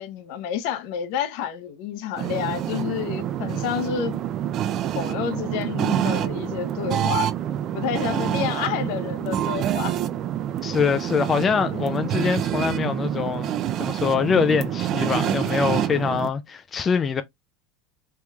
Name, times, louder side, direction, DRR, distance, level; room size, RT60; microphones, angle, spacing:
voice 1, 0.0-4.2 4.9-7.3 7.7-10.0 11.7-12.0, left 9 dB, 65° left, 0.7 m, -29 dB
sound 1, 2.2-16.3, right 11 dB, 45° right, 0.3 m, -27 dB
voice 2, 10.6-17.2, left 6 dB, 25° left, 0.4 m, -24 dB
3.4 x 3.0 x 2.3 m
supercardioid pair, 110°, 0 cm